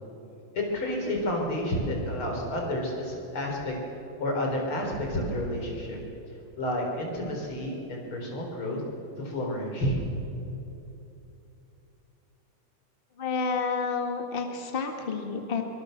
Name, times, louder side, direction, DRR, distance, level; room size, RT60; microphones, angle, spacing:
voice 1, 0.5-3.7 4.2-6.0 6.6-8.8 9.2-10.0, left 1 dB, 35° left, 0 dB, 4.7 m, -30 dB
voice 2, 13.2-15.6, left 5 dB, 60° left, 4 dB, 0.5 m, -30 dB
24.0 x 24.0 x 6.7 m, 2.9 s
omnidirectional pair, 4.3 m